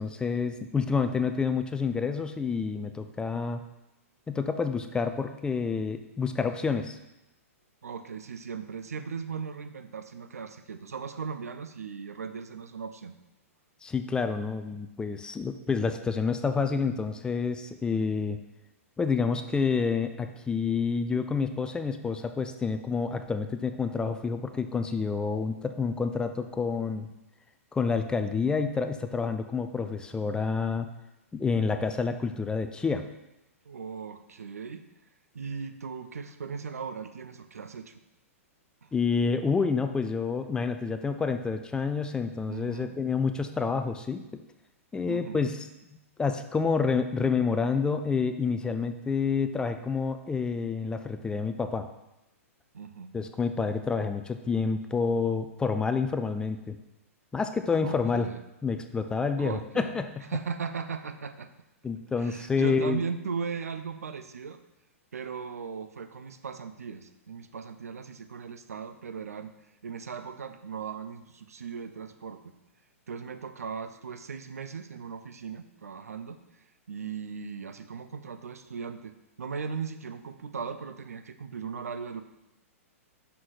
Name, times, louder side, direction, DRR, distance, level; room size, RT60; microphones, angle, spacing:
voice 1, 0.0-3.6 4.3-7.0 13.8-18.4 19.0-27.1 27.7-30.9 31.3-33.1 38.9-44.4 44.9-45.6 46.2-51.9 53.1-56.8 57.3-58.3 58.6-60.3 61.8-63.0, left 5 dB, 10° left, 8 dB, 0.4 m, -28 dB
voice 2, 7.8-13.1 33.7-34.8 35.3-38.0 38.8-38.9 42.5-43.0 45.1-45.4 52.7-53.1 57.7-58.4 59.4-59.9 60.3-61.5 62.2-64.6 65.1-69.5 69.8-72.4 73.1-82.2, right 6 dB, 90° right, 10 dB, 0.5 m, -38 dB
5.9 x 3.9 x 4.7 m, 0.94 s
hypercardioid pair, 120°, 8 cm